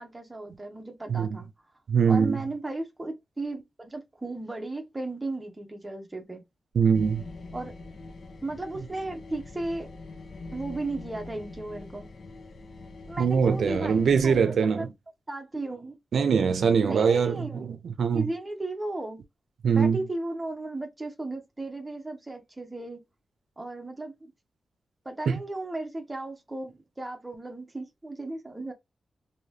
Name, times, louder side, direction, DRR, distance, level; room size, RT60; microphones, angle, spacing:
voice 1, 0.0-1.5 2.1-6.4 7.5-7.7 8.4-9.9 10.5-12.1 13.1-14.9 15.3-16.0 16.9-17.7 18.1-19.2 19.7-23.0 23.6-24.3 25.0-28.7, right 2 dB, 15° right, 0.7 m, -35 dB
voice 2, 1.9-2.4 6.7-7.2 13.2-14.9 16.1-18.3 19.6-20.0 25.3-25.4, right 6 dB, 75° right, 0.5 m, -23 dB
metasynth meat slicer, 6.9-14.4, left 2 dB, 50° left, 0.6 m, -43 dB
2.8 x 2.7 x 3.2 m
wide cardioid pair, 175°, 0 cm